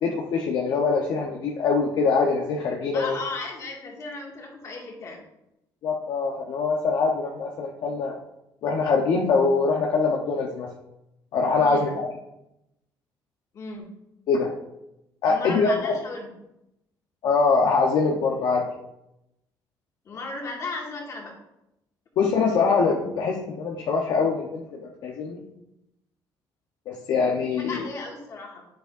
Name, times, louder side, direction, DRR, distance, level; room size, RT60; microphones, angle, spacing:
voice 1, 0.0-3.2 5.8-8.2 8.6-10.7 11.3-12.1 14.3-14.5 15.2-15.9 17.2-18.6 22.2-25.4 26.9-27.9, left 4 dB, 65° left, -1 dB, 1.0 m, -23 dB
voice 2, 2.9-5.2 11.6-11.9 13.5-13.9 15.3-16.3 20.0-21.4 27.6-28.6, left 3 dB, 45° left, -1 dB, 2.1 m, -35 dB
9.2 x 7.7 x 2.6 m, 0.85 s
cardioid pair, 140°, 8 cm